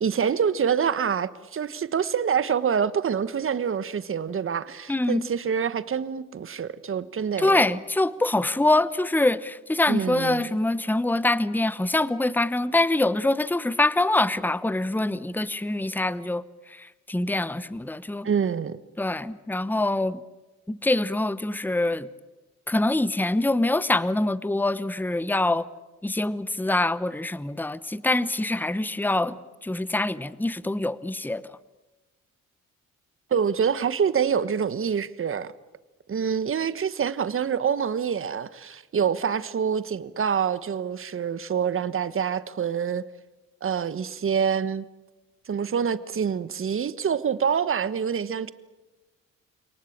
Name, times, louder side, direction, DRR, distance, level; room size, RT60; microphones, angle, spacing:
voice 1, 0.0-7.6 9.9-10.5 18.2-18.8 33.3-35.5 36.1-43.0 43.6-44.8 45.5-48.5, right 7 dB, 45° right, 1.4 m, -26 dB
voice 2, 4.9-5.3 7.4-16.4 16.7-18.3 19.0-20.2 20.7-22.1 22.7-25.7 26.0-29.4 29.6-31.4, left 2 dB, 5° left, 1.0 m, -24 dB
28.0 x 19.0 x 8.7 m
cardioid pair, 90°, 30 cm